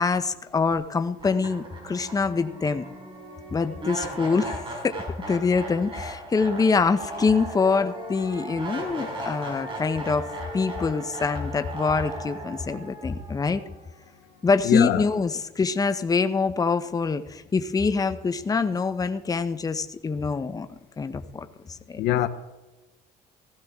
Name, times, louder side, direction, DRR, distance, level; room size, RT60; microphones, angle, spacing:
voice 1, 0.0-2.9 3.5-10.3 10.5-13.6 14.4-20.7 21.0-22.0, left 4 dB, 20° left, 0.8 m, -25 dB
sound 1, 0.7-0.8 1.2-14.3, right 1 dB, 30° right, 4.5 m, -37 dB
voice 2, 14.6-15.0 22.0-22.3, left 13 dB, 85° left, 0.8 m, -22 dB
16.0 x 14.5 x 3.6 m
cardioid pair, 110°, 17 cm